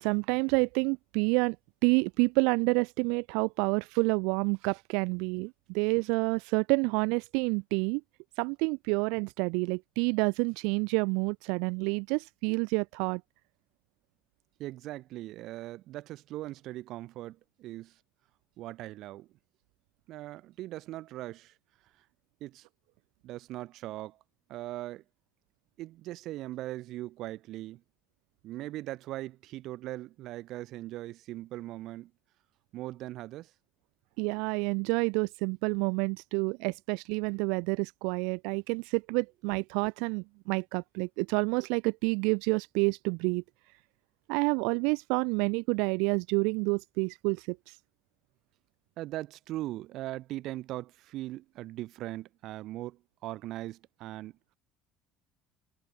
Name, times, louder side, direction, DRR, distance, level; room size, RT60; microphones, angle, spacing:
voice 1, 0.0-1.6 1.8-8.0 8.4-13.2 34.2-43.4 44.3-47.8, right 33 dB, 90° right, 0.5 m, -28 dB
voice 2, 14.6-17.9 18.6-19.3 20.1-21.5 22.4-22.6 23.2-24.2 24.5-25.0 25.8-27.8 28.4-32.1 32.7-33.5 49.0-54.3, right 15 dB, 55° right, 1.6 m, -40 dB
cardioid pair, 160°, 0 cm